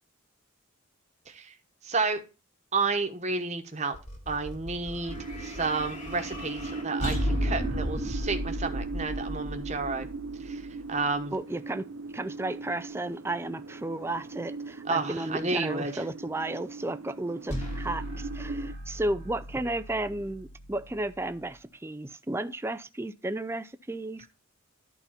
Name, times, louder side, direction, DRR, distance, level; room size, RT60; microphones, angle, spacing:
voice 1, 1.8-2.2 2.7-4.0 4.3-10.1 10.4-11.3 14.9-16.1, right 3 dB, 35° right, 1.1 m, -31 dB
sound 1, 3.9-11.2 17.5-21.6, equal, 35° left, 1.9 m, -36 dB
sound 2, 5.1-18.7, right 3 dB, 85° right, 0.6 m, -39 dB
voice 2, 11.3-11.9 12.1-24.3, right 1 dB, 10° right, 0.4 m, -33 dB
11.0 x 4.2 x 5.7 m
head